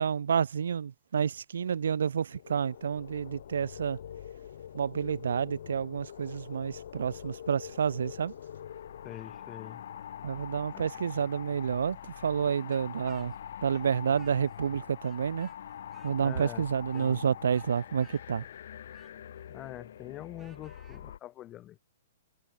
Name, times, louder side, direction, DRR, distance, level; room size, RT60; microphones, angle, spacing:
voice 1, 0.0-4.0 4.7-8.3 10.2-13.3 13.6-15.5 16.0-18.4, right 7 dB, 85° right, 0.4 m, -29 dB
sound 1, 2.3-21.2, left 9 dB, 65° left, 3.1 m, -44 dB
voice 2, 9.0-9.8 10.7-10.9 16.2-16.7 16.9-17.3 19.5-21.8, left 13 dB, 20° left, 3.4 m, -44 dB
Speech, 12.7-14.7 15.0-21.0, right 7 dB, 15° right, 5.1 m, -63 dB
hypercardioid pair, 160°, 0 cm